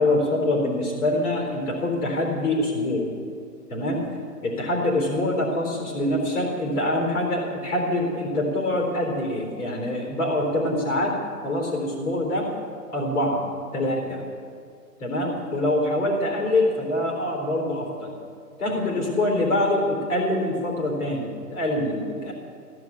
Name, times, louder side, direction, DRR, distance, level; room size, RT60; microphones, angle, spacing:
voice 1, 0.0-3.1 3.7-4.0 4.4-11.1 11.4-12.5 12.9-13.5 13.7-14.2 15.0-18.1 18.6-22.3, left 1 dB, 70° left, 1 dB, 4.0 m, -25 dB
16.0 x 8.0 x 8.7 m, 2.2 s
hypercardioid pair, 170°, 47 cm